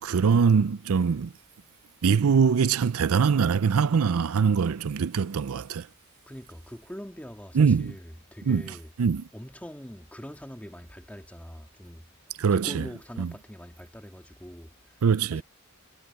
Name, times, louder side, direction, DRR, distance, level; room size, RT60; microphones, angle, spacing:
voice 1, 0.0-1.3 2.0-5.9 7.5-7.9 8.5-9.2 12.4-12.9 13.2-13.3 15.0-15.4, right 6 dB, 80° right, 0.5 m, -23 dB
voice 2, 6.3-8.9 9.3-12.1 12.5-15.0 15.3-15.4, equal, 5° left, 2.2 m, -43 dB
head